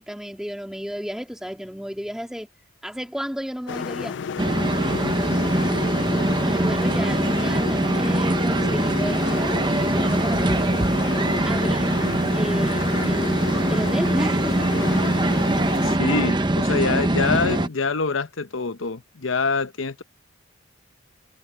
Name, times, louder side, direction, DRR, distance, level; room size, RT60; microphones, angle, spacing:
voice 1, 0.0-2.5 2.8-4.3 4.8-4.9 6.5-10.8 11.5-12.0 12.3-14.6, equal, 5° right, 2.0 m, -33 dB
sound 1, 3.7-16.0, left 6 dB, 65° left, 0.3 m, -32 dB
sound 2, 4.4-17.7, right 1 dB, 20° right, 0.8 m, -22 dB
voice 2, 15.8-20.0, left 4 dB, 80° left, 0.9 m, -25 dB
head